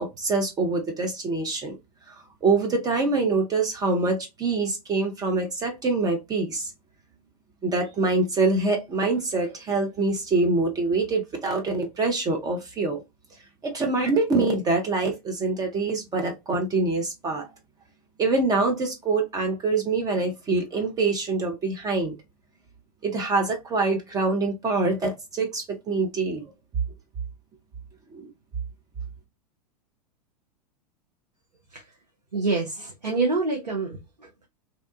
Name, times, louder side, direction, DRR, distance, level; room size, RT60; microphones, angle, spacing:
voice 1, 0.0-1.8 2.1-6.7 7.6-13.0 13.6-17.5 18.2-22.2 23.0-26.4 28.1-28.3, right 3 dB, 20° right, 0.5 m, -25 dB
voice 2, 32.3-34.5, right 3 dB, 85° right, 0.7 m, -27 dB
2.8 x 2.1 x 2.4 m
figure-of-eight pair, 95°, 20 cm